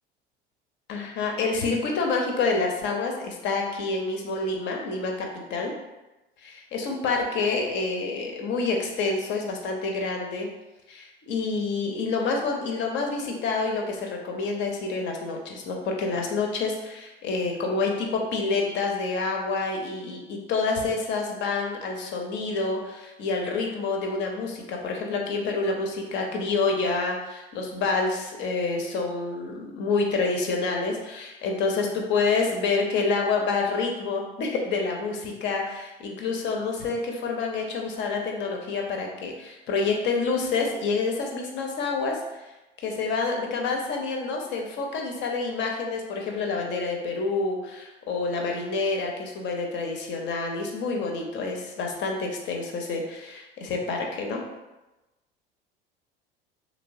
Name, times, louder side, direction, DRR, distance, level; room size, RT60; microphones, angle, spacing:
voice 1, 0.9-5.7 6.4-10.5 10.9-42.4 42.8-54.4, left 4 dB, 40° left, 1 dB, 0.7 m, -28 dB
3.1 x 3.1 x 2.6 m, 1.0 s
figure-of-eight pair, 70°, 29 cm